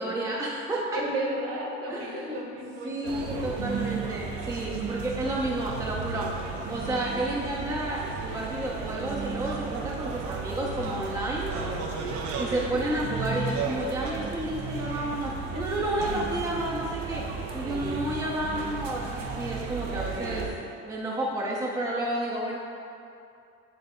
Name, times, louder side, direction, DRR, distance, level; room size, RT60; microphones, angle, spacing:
voice 1, 0.0-1.0 1.9-2.4 2.8-6.3 6.7-11.5 12.4-17.2 17.5-20.4 20.9-22.6, right 1 dB, 10° right, -3 dB, 0.7 m, -31 dB
voice 2, 0.9-3.5 11.5-12.8 15.5-15.6 16.1-16.2 17.6-18.1 19.8-20.5, right 1 dB, 50° right, -1 dB, 1.3 m, -36 dB
sound 1, 3.0-20.5, right 4 dB, 75° right, 0.8 m, -34 dB
9.0 x 3.4 x 3.7 m, 2.6 s
supercardioid pair, 100°, 31 cm